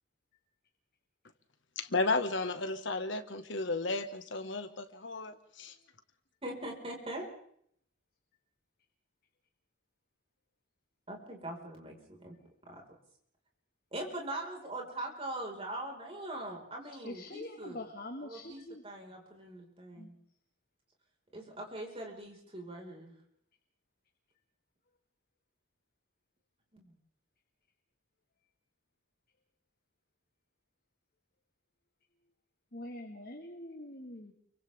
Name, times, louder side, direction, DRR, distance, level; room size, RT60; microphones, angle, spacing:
voice 1, 1.8-5.7, left 3 dB, 65° left, 8 dB, 1.8 m, -33 dB
voice 2, 6.4-7.3 11.1-12.4 12.7-12.8 13.9-17.8 18.2-20.1 21.3-23.1 26.7-26.9, right 1 dB, 30° right, 0 dB, 5.3 m, -42 dB
voice 3, 17.0-18.8 20.0-20.1 32.7-34.3, left 1 dB, 45° left, 3 dB, 2.0 m, -44 dB
29.0 x 24.5 x 3.7 m, 0.67 s
head